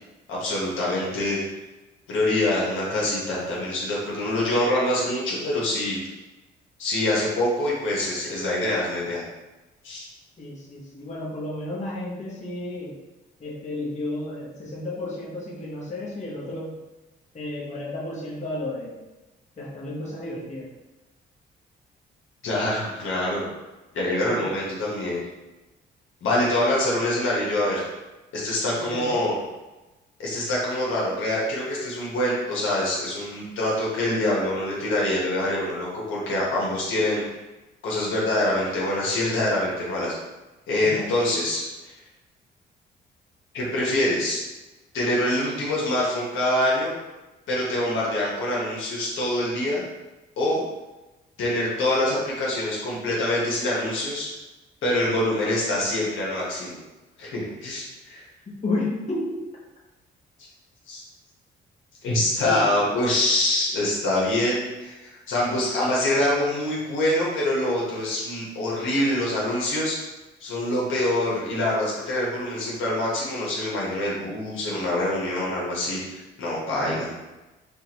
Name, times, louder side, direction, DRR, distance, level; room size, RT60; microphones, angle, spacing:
voice 1, 0.3-1.4 2.1-6.0 6.8-9.2 9.8-10.0 22.4-23.4 23.9-25.2 26.2-27.8 28.3-29.3 30.2-37.2 37.8-40.1 40.7-41.9 43.5-44.4 44.9-46.9 47.5-49.8 50.4-50.6 51.4-54.3 54.8-56.8 57.2-58.2 60.9-61.0 62.0-70.0 70.4-77.1, left 1 dB, 80° left, -5 dB, 1.3 m, -25 dB
voice 2, 10.4-13.0 13.4-16.8 17.3-19.0 19.6-20.7 24.3-24.4 28.8-29.3 40.8-41.1 58.5-59.4 62.4-62.8 76.7-77.0, left 2 dB, 35° left, -5 dB, 1.2 m, -32 dB
5.1 x 2.5 x 3.0 m, 1.1 s
cardioid pair, 90°, 20 cm